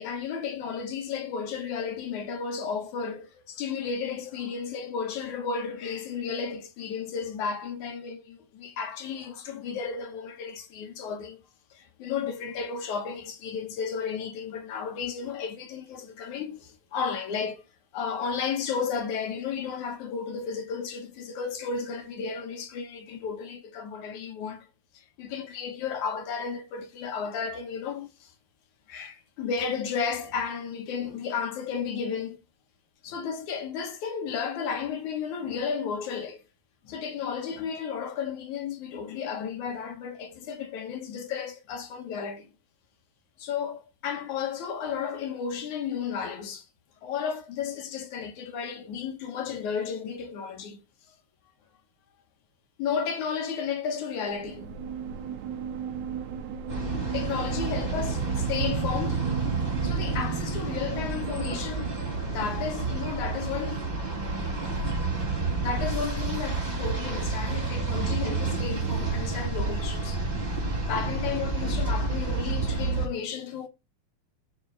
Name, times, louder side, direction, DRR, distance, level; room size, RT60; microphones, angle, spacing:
voice 1, 0.0-11.4 11.7-17.6 17.9-24.7 24.9-28.3 28.9-32.4 33.0-36.4 36.9-42.5 43.4-46.7 47.0-50.8 52.8-54.7 57.1-59.5 59.8-63.8 65.6-70.3 70.6-73.7, left 6 dB, 65° left, 2.3 m, -33 dB
sound 1, 54.3-62.1, right 7 dB, 65° right, 2.0 m, -37 dB
sound 2, 56.7-73.1, right 3 dB, 15° right, 3.7 m, -29 dB
7.6 x 7.2 x 3.3 m
omnidirectional pair, 4.3 m